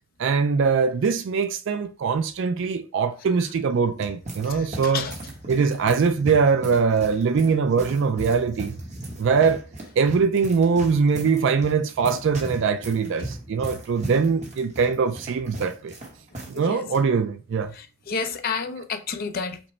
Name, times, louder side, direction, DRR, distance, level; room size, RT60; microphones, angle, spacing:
voice 1, 0.2-5.1 5.5-8.8 9.2-9.6 10.0-16.0 16.5-17.7, right 5 dB, 55° right, 0.3 m, -22 dB
sound 1, 3.7-16.6 16.9-17.0 17.7-18.0, right 1 dB, 30° right, 0.9 m, -38 dB
voice 2, 4.4-5.2 16.3-16.9 17.7-19.6, left 5 dB, 40° left, 0.5 m, -31 dB
5.2 x 2.1 x 4.1 m
head